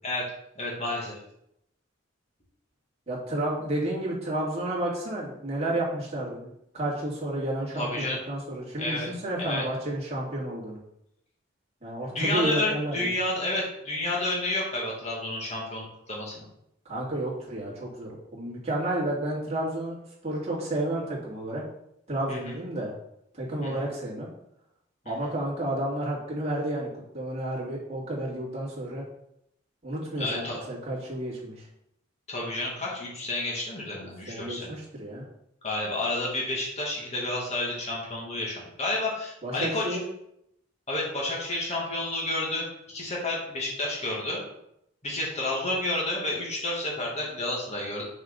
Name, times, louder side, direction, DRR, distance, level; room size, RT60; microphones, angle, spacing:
voice 1, 0.6-1.2 7.8-8.2 8.8-9.1 9.4-9.6 12.1-16.4 22.3-22.6 23.6-23.9 25.1-25.3 30.2-30.6 32.3-34.7 35.6-40.0 40.9-44.4 45.0-48.0, left 2 dB, 35° left, -3 dB, 2.0 m, -30 dB
voice 2, 3.1-10.8 11.8-13.1 16.8-19.9 20.2-21.6 22.1-22.9 23.3-24.3 25.1-26.9 27.1-29.0 29.8-31.7 34.3-35.2 39.4-40.0, right 1 dB, 35° right, -6 dB, 2.4 m, -31 dB
6.3 x 5.3 x 3.9 m, 0.78 s
head